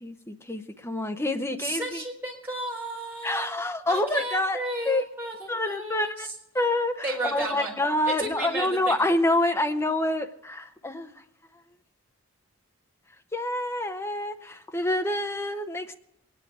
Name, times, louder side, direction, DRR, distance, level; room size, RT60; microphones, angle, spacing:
voice 1, 0.0-2.0 3.2-5.0 5.5-6.3 6.5-11.1 13.3-15.9, left 1 dB, 10° left, 6 dB, 0.7 m, -27 dB
voice 2, 1.6-3.5 3.9-6.3 7.0-7.7 8.1-9.0, right 1 dB, 10° right, -4 dB, 4.2 m, -33 dB
23.0 x 10.0 x 4.8 m, 0.79 s
head